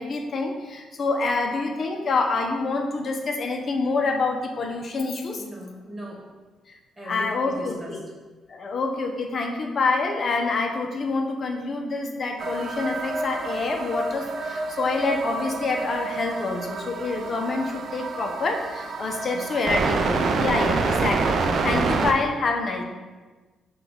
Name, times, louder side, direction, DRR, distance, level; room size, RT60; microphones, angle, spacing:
voice 1, 0.0-5.4 7.1-8.0 8.5-22.8, left 3 dB, 45° left, 2 dB, 0.6 m, -27 dB
voice 2, 5.4-6.2 7.0-8.0 19.3-19.7, equal, 20° right, -3 dB, 1.3 m, -39 dB
sound 1, 12.4-22.1, right 4 dB, 55° right, 0.4 m, -27 dB
5.9 x 2.3 x 3.5 m, 1.3 s
cardioid pair, 90°, 0 cm